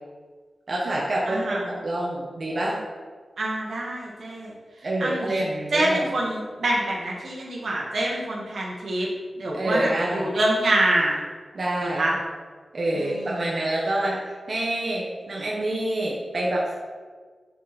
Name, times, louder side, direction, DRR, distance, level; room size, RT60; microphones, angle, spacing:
voice 1, 0.7-1.6 1.8-2.8 4.8-6.0 9.5-10.3 11.5-12.1 12.7-16.7, right 1 dB, 55° right, -4 dB, 1.4 m, -27 dB
voice 2, 1.3-1.7 3.4-4.5 5.0-5.4 5.7-9.1 9.3-11.2 11.8-12.1 12.9-13.5, right 1 dB, 75° right, -3 dB, 2.0 m, -26 dB
9.9 x 4.5 x 4.4 m, 1.5 s
wide cardioid pair, 80°, 0 cm